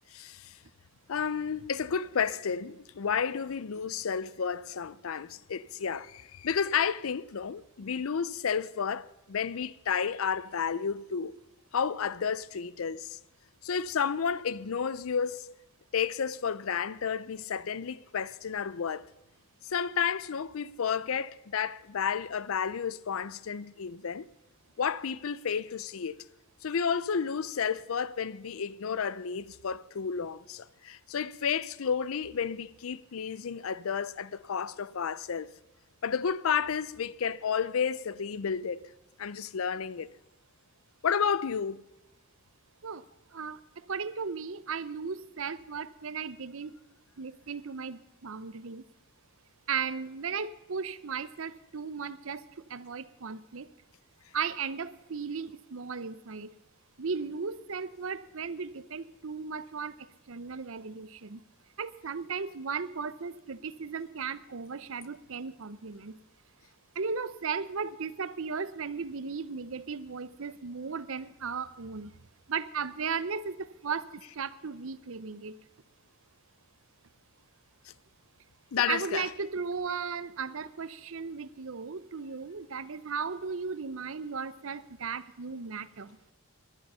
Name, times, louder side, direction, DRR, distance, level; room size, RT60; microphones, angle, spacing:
voice 1, 0.1-0.6 1.1-11.4 11.7-13.2 13.6-15.6 15.9-19.1 19.6-24.3 24.8-26.2 26.6-35.5 36.0-38.9 39.2-40.1 41.0-41.8 78.7-79.3, left 6 dB, 75° left, 0.5 m, -31 dB
voice 2, 43.3-46.8 47.2-48.8 49.7-53.7 54.3-56.5 57.0-60.0 60.3-61.4 61.8-66.2 67.0-72.1 72.5-75.6 78.8-86.2, right 5 dB, 70° right, 0.7 m, -36 dB
19.0 x 11.0 x 5.6 m
head